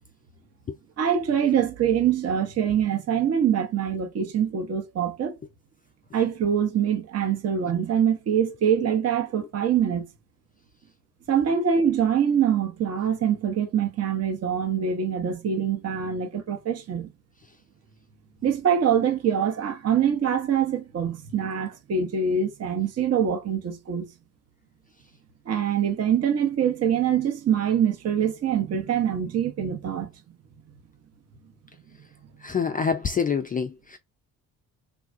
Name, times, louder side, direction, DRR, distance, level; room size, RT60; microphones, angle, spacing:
voice 1, 1.0-5.3 6.1-10.1 11.3-17.1 18.4-24.1 25.5-30.1, right 8 dB, 40° right, 0.8 m, -24 dB
voice 2, 32.4-34.0, left 6 dB, 20° left, 0.4 m, -26 dB
3.4 x 2.2 x 2.5 m
hypercardioid pair, 45°, 40 cm